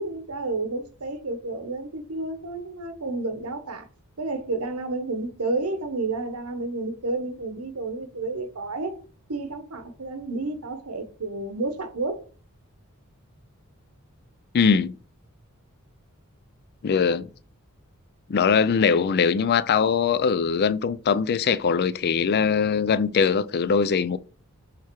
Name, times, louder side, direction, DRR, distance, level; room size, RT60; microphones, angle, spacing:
voice 1, 0.0-3.9 4.2-9.0 9.3-12.3, right 2 dB, 85° right, 1.1 m, -31 dB
voice 2, 14.5-14.9 16.8-17.3 18.3-24.2, left 6 dB, 45° left, 0.4 m, -21 dB
6.4 x 3.5 x 4.6 m
head